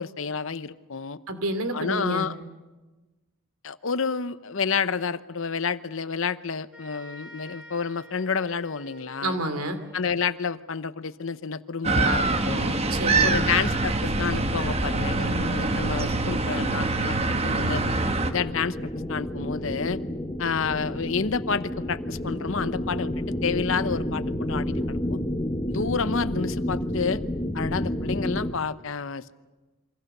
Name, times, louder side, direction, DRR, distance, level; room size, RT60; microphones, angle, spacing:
voice 1, 0.0-1.2 1.7-2.3 3.6-9.4 9.9-12.8 13.2-17.8 18.3-18.8 19.1-20.0 20.4-25.2 25.7-27.2 27.5-29.3, left 5 dB, 65° left, 14 dB, 0.8 m, -29 dB
voice 2, 1.3-2.2 9.2-9.8 12.9-13.4, right 1 dB, 80° right, 9 dB, 2.8 m, -29 dB
sound 1, 6.7-10.4, left 1 dB, 5° right, 6.6 m, -48 dB
sound 2, 11.8-18.3, right 3 dB, 30° right, 1.2 m, -24 dB
sound 3, 17.3-28.5, left 1 dB, 20° left, 1.4 m, -30 dB
28.0 x 25.0 x 6.7 m, 1.2 s
head